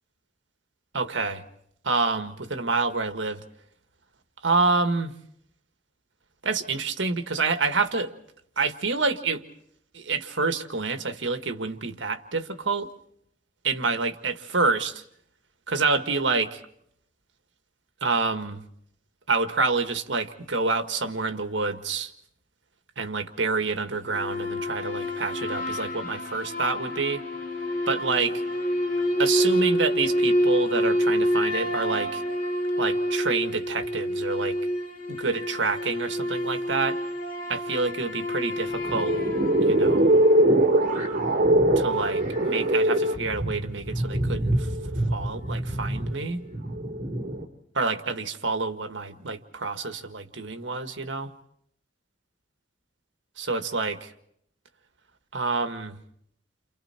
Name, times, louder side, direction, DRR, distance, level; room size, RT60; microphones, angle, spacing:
voice 1, 0.9-1.4 1.8-3.4 4.4-5.1 6.4-8.1 8.6-9.4 9.9-12.9 13.6-15.0 15.7-16.6 18.0-18.6 19.3-22.1 23.0-27.2 27.9-28.4 29.2-32.2 32.8-34.6 35.1-37.0 37.5-39.1 39.6-40.1 41.7-44.7 45.1-46.4 47.7-51.3 53.4-54.1 55.3-56.0, right 4 dB, 80° right, 8 dB, 1.7 m, -27 dB
sound 1, 24.1-40.7, equal, 50° left, 2.9 m, -28 dB
sound 2, 38.7-47.4, right 1 dB, 45° right, 3.7 m, -23 dB
30.0 x 27.5 x 4.4 m, 0.71 s
head